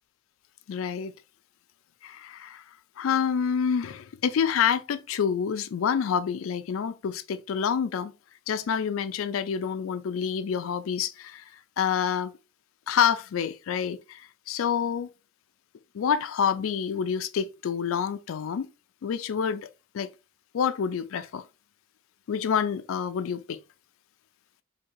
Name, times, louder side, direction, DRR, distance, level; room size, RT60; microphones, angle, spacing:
voice 1, 0.7-1.1 2.0-2.6 3.0-8.1 8.5-11.4 11.8-12.3 12.9-15.1 15.9-18.7 19.0-19.7 19.9-20.1 20.5-21.4 22.3-23.6, left 7 dB, 80° left, 0.4 m, -27 dB
4.4 x 2.8 x 2.6 m
head